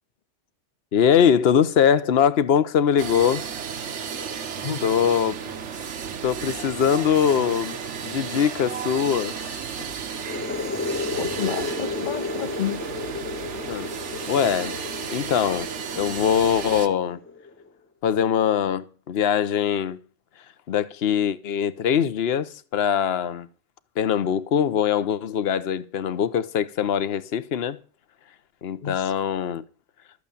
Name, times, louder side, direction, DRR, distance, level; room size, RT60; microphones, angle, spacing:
voice 1, 0.9-3.4 4.8-5.4 6.2-7.8 8.0-9.6 13.7-13.9 14.3-14.8 15.1-17.2 18.0-20.0 20.7-23.5 24.0-27.8 28.6-29.6, left 8 dB, 65° left, 1.1 m, -22 dB
sound 1, 3.0-16.9, right 7 dB, 90° right, 1.3 m, -33 dB
voice 2, 4.6-5.0 11.2-12.8 28.8-29.1, left 8 dB, 50° left, 0.8 m, -31 dB
sound 2, 10.1-17.7, left 4 dB, 15° left, 0.5 m, -33 dB
13.0 x 8.4 x 6.9 m
omnidirectional pair, 1.2 m